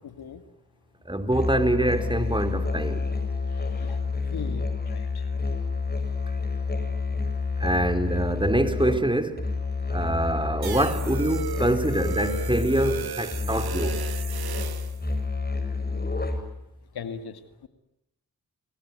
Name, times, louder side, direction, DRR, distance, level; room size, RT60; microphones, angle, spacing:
voice 1, 0.0-0.4 3.6-4.0 4.3-5.2 16.9-17.7, left 6 dB, 85° left, 2.3 m, -39 dB
voice 2, 1.1-3.1 7.6-9.5 9.9-13.9, right 1 dB, 15° right, 4.2 m, -25 dB
Musical instrument, 1.3-16.6, left 4 dB, 25° left, 7.7 m, -29 dB
sound 1, 10.6-15.0, right 8 dB, 80° right, 1.6 m, -36 dB
29.5 x 21.5 x 9.4 m
cardioid pair, 45°, 37 cm